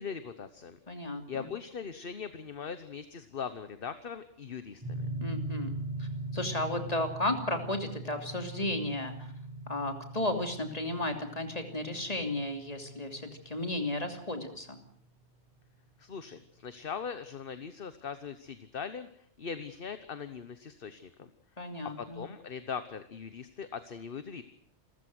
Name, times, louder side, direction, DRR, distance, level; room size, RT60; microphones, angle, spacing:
voice 1, 0.0-0.8 1.3-5.1 16.0-19.1 19.4-21.3 21.6-21.7 22.0-24.4, left 6 dB, 55° left, 11 dB, 1.3 m, -40 dB
voice 2, 0.9-1.5 5.2-9.3 9.7-14.8 21.6-22.2, left 1 dB, 35° left, 5 dB, 3.2 m, -34 dB
sound 1, 4.8-15.0, right 2 dB, 20° right, 6.8 m, -41 dB
28.5 x 14.5 x 7.9 m, 0.64 s
omnidirectional pair, 1.2 m